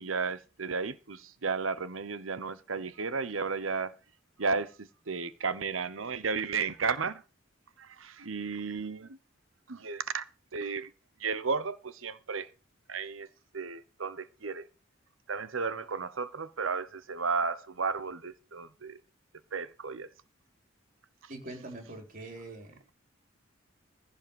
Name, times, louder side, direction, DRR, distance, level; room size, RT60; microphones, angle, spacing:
voice 1, 0.0-3.9 4.4-7.2 7.8-9.2 9.7-10.2 10.5-10.9 11.2-12.5 12.9-13.3 13.5-14.7 15.3-19.0 19.5-20.1, right 5 dB, 90° right, 1.0 m, -33 dB
voice 2, 21.3-22.9, right 2 dB, 45° right, 3.7 m, -44 dB
15.5 x 5.2 x 7.1 m
head